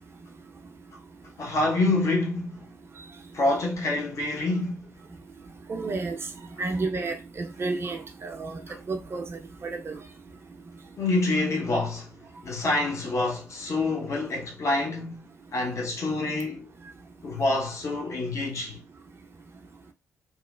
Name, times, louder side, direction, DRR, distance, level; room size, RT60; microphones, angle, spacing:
voice 1, 1.4-2.6 3.3-4.8 11.0-12.1 12.4-16.7 17.2-18.8, left 2 dB, 45° left, 0.8 m, -27 dB
voice 2, 5.7-6.2 6.6-8.6 8.9-10.0, right 3 dB, 35° right, 0.5 m, -31 dB
3.0 x 2.1 x 2.2 m
figure-of-eight pair, 45°, 7 cm